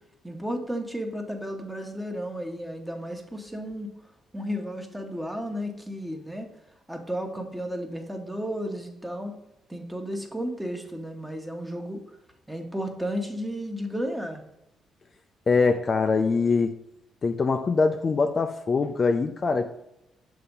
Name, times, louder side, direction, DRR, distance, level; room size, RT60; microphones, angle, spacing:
voice 1, 0.2-3.9 4.3-6.5 6.9-9.3 9.7-12.0 12.5-14.4, equal, 5° right, 3 dB, 1.1 m, -33 dB
voice 2, 15.5-16.7 17.2-19.7, left 4 dB, 40° left, 5 dB, 0.4 m, -23 dB
6.7 x 3.4 x 5.3 m, 0.85 s
cardioid pair, 90°, 0 cm